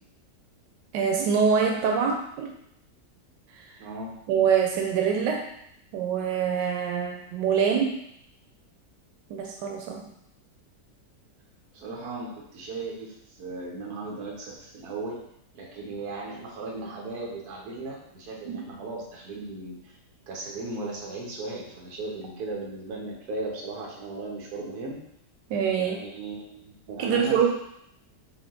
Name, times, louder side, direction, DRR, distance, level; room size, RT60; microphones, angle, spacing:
voice 1, 0.9-2.5 3.5-3.7 4.3-5.5 5.9-8.0 9.3-10.1 18.4-18.7 25.5-26.0 27.0-27.5, right 7 dB, 90° right, 2 dB, 1.2 m, -25 dB
voice 2, 3.8-4.1 11.7-15.2 15.5-20.0 20.3-25.0 25.7-27.5, right 2 dB, 65° right, -1 dB, 1.4 m, -37 dB
4.4 x 2.7 x 3.7 m, 0.75 s
omnidirectional pair, 1.8 m